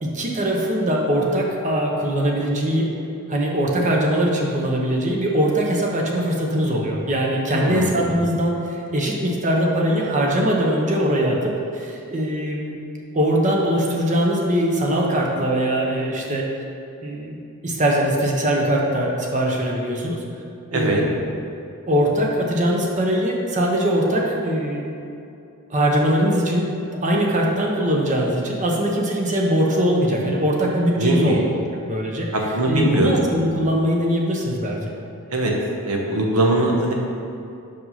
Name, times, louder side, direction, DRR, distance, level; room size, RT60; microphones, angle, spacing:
voice 1, 0.0-2.9 3.3-11.4 11.7-12.7 13.1-16.4 17.0-17.4 17.6-20.2 20.7-21.2 21.9-24.9 25.7-26.7 27.0-31.4 31.9-32.3 32.7-34.8, equal, 35° right, -1 dB, 0.9 m, -21 dB
voice 2, 7.5-7.9 20.7-21.0 31.0-31.4 32.3-33.1 35.3-35.5 35.8-36.9, right 1 dB, 80° right, 0 dB, 1.1 m, -21 dB
5.5 x 5.4 x 5.7 m, 2.6 s
head